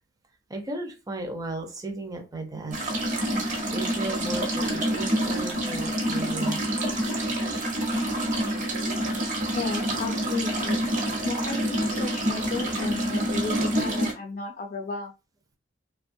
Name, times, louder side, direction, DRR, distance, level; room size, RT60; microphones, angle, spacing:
voice 1, 0.5-3.2 3.7-6.6, right 2 dB, 20° right, 3 dB, 0.5 m, -35 dB
sound 1, 2.7-14.1, right 1 dB, 40° right, 0.8 m, -27 dB
voice 2, 9.5-10.8 11.2-15.1, left 4 dB, 40° left, 2 dB, 0.4 m, -33 dB
3.1 x 2.2 x 2.6 m, 0.28 s
head